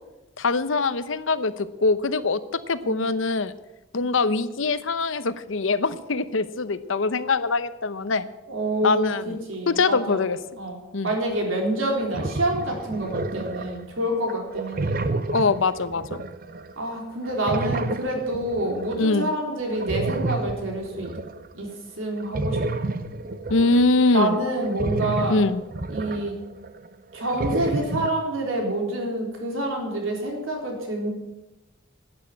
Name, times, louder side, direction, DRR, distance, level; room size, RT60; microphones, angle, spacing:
voice 1, 0.4-3.5 3.9-8.3 8.8-9.4 9.7-10.4 10.9-11.1 15.3-16.3 19.0-19.3 23.5-24.4 25.3-25.6, left 3 dB, 75° left, 13 dB, 0.8 m, -23 dB
voice 2, 8.5-10.2 10.6-10.8 11.0-15.0 16.8-21.2 21.5-22.6 24.1-25.4 25.9-26.4 27.1-31.1, right 1 dB, 85° right, 1 dB, 3.7 m, -27 dB
sound 1, 11.3-11.4 11.8-13.8 14.3-17.0 17.2-19.0 19.7-21.5 22.2-26.9 27.1-28.1, right 2 dB, 45° right, 0.7 m, -30 dB
12.5 x 8.9 x 8.4 m, 1.0 s
head